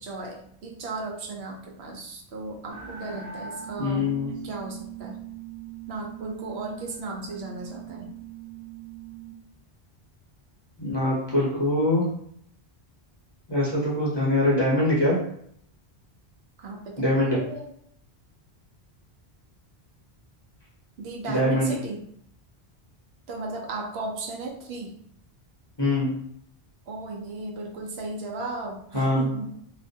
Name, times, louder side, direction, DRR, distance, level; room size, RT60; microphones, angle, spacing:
voice 1, 0.0-4.1 4.4-5.2 5.9-8.1 16.6-17.7 21.0-22.0 23.3-24.9 26.9-29.5, right 3 dB, 80° right, 0 dB, 0.8 m, -35 dB
sound 1, 2.7-9.3, right 9 dB, 25° right, 0.4 m, -41 dB
voice 2, 3.8-4.3 10.8-12.1 13.5-15.2 17.0-17.4 21.3-21.7 25.8-26.2 28.9-29.3, left 1 dB, 30° left, -6 dB, 0.5 m, -23 dB
2.4 x 2.2 x 2.6 m, 0.67 s
omnidirectional pair, 1.1 m